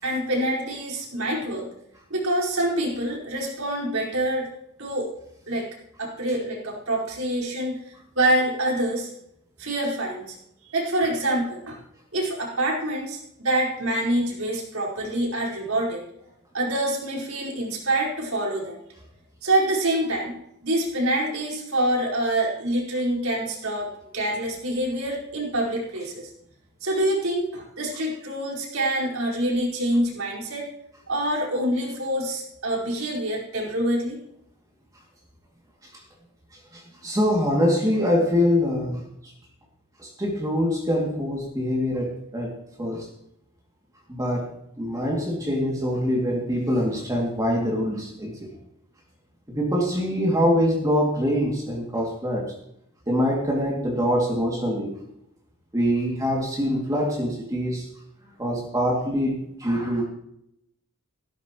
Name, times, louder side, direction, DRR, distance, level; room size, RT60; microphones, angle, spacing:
voice 1, 0.0-1.7 2.1-4.5 4.8-5.1 5.5-5.7 6.0-7.8 8.1-9.1 9.6-10.4 10.7-11.8 12.1-16.0 16.5-18.8 19.4-20.4 20.6-26.3 26.8-30.7 31.1-34.2, right 1 dB, 75° right, -3 dB, 4.9 m, -26 dB
voice 2, 36.7-39.3 40.0-43.1 44.1-44.5 44.8-48.5 49.5-52.6 53.1-54.9 55.7-57.9 58.4-60.1, equal, 15° right, -2 dB, 2.5 m, -24 dB
16.0 x 13.0 x 3.1 m, 0.76 s
head